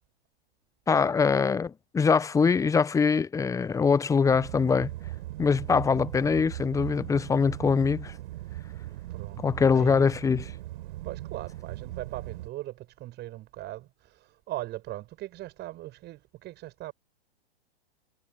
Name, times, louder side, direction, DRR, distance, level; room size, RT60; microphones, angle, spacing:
voice 1, 0.9-4.9 5.4-8.1 9.4-10.5, left 5 dB, 10° left, 0.8 m, -23 dB
sound 1, 4.2-12.5, right 16 dB, 55° right, 6.9 m, -39 dB
voice 2, 9.1-9.5 9.7-10.1 11.0-16.9, right 16 dB, 35° right, 7.2 m, -39 dB
hypercardioid pair, 115°, 31 cm